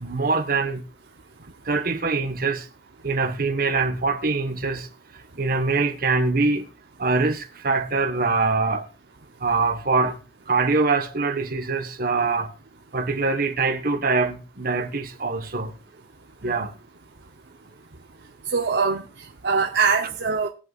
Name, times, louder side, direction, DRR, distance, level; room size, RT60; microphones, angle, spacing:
voice 1, 0.0-0.8 1.7-2.6 3.0-4.8 5.4-6.6 7.0-7.4 7.6-8.8 9.4-10.1 10.5-12.5 12.9-15.7 16.4-16.7, right 3 dB, 55° right, 1.5 m, -23 dB
voice 2, 18.5-20.5, right 5 dB, 85° right, 1.0 m, -23 dB
21.0 x 8.3 x 2.5 m
head